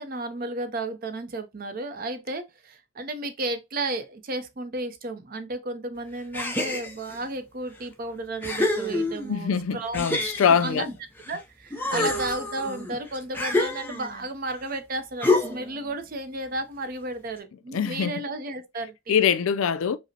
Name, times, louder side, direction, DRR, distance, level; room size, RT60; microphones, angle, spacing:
voice 1, 0.0-10.1 10.5-10.9 11.3-19.2, right 2 dB, 40° right, 0.5 m, -33 dB
sound 1, 6.3-7.2 7.8-7.9 8.4-9.4 9.9-11.4 11.7-14.2 15.2-15.8, left 2 dB, 10° left, 0.5 m, -27 dB
voice 2, 9.3-10.9 11.9-12.1 17.7-18.2 19.1-20.0, left 7 dB, 75° left, 0.4 m, -23 dB
5.0 x 2.0 x 2.7 m
head